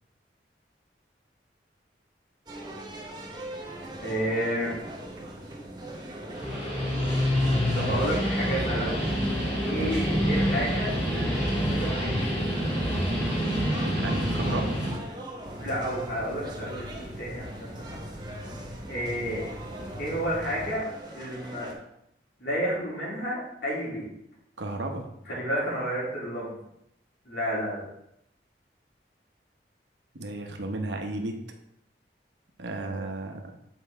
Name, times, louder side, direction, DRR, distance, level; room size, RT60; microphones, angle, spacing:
sound 1, 2.5-21.7, right 1 dB, 25° right, 0.9 m, -41 dB
voice 1, 4.0-4.7 7.7-9.0 9.6-12.3 15.6-18.0 18.9-19.4 20.0-20.9 21.1-21.7 22.4-24.1 25.3-26.6 27.2-27.8 32.8-33.0, equal, 75° left, -6 dB, 2.8 m, -31 dB
Guitar, 6.2-15.0, equal, 25° left, 2.8 m, -27 dB
voice 2, 9.7-10.1 13.7-14.8 24.6-25.1 30.1-31.4 32.6-33.4, right 2 dB, 85° right, 3 dB, 0.9 m, -33 dB
sound 2, 15.4-20.7, equal, 60° right, 1.8 m, -42 dB
7.6 x 4.7 x 3.4 m, 0.78 s
head